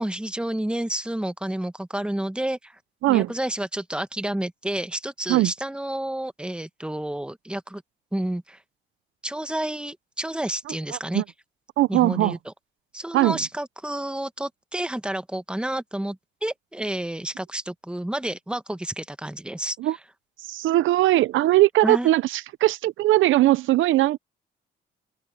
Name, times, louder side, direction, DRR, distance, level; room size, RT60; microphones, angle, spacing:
voice 1, 0.0-2.8 3.1-7.8 8.1-8.6 9.2-11.2 11.9-12.4 12.9-19.8 21.8-22.1, right 1 dB, 5° right, 1.2 m, -30 dB
voice 2, 3.0-3.3 5.3-5.5 10.9-11.2 11.8-12.4 13.1-13.4 19.8-20.0 20.4-24.2, right 16 dB, 80° right, 0.6 m, -20 dB
open air
cardioid pair, 90°, 20 cm